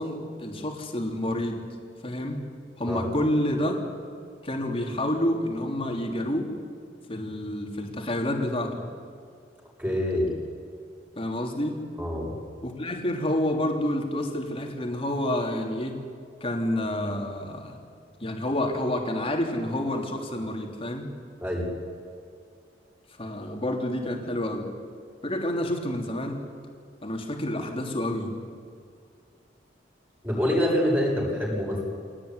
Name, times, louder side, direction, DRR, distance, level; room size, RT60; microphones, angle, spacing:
voice 1, 0.0-1.7 2.0-2.5 2.8-3.8 4.4-6.5 7.1-8.8 11.2-11.8 12.6-16.0 16.4-17.8 18.2-21.1 23.2-24.7 25.2-26.4 27.0-28.3, left 1 dB, 30° left, 2 dB, 3.4 m, -29 dB
voice 2, 9.8-10.3 12.0-12.3 21.4-21.7 30.2-31.8, left 1 dB, 10° right, -3 dB, 7.6 m, -26 dB
25.5 x 18.0 x 9.9 m, 2.4 s
head